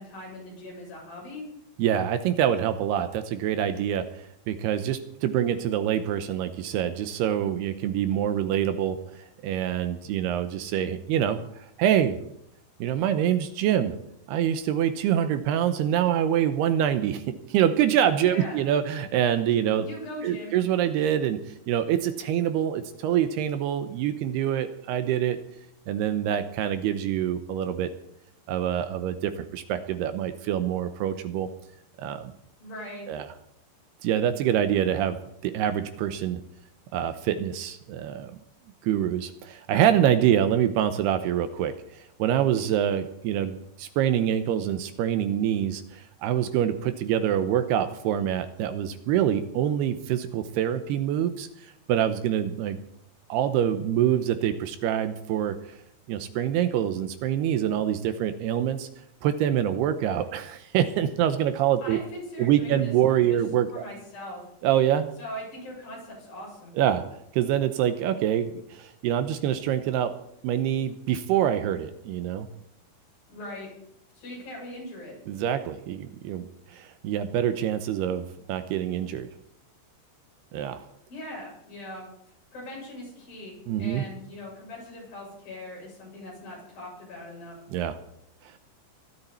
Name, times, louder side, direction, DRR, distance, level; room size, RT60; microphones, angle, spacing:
voice 1, 0.0-1.5 18.3-18.6 19.8-20.6 32.6-33.1 61.8-62.9 63.2-63.4 63.7-64.4 65.2-66.7 73.3-73.7 74.1-75.2 81.1-82.1 82.5-87.6, left 1 dB, 55° left, -3 dB, 9.5 m, -40 dB
voice 2, 1.8-4.1 4.5-11.4 11.8-12.2 12.8-14.0 14.3-19.9 20.2-21.4 21.7-25.4 25.9-27.9 28.5-31.5 32.0-32.3 33.1-33.3 34.0-35.2 35.4-36.4 36.9-38.4 38.8-51.5 51.9-52.8 53.3-55.6 56.1-58.9 59.2-62.0 62.4-63.9 64.6-65.1 66.8-67.0 67.3-70.1 70.4-72.5 75.3-79.3 80.5-80.8 83.7-84.0 87.7-88.0, right 10 dB, 80° right, 10 dB, 2.7 m, -25 dB
23.5 x 13.0 x 4.3 m, 0.75 s
omnidirectional pair, 4.9 m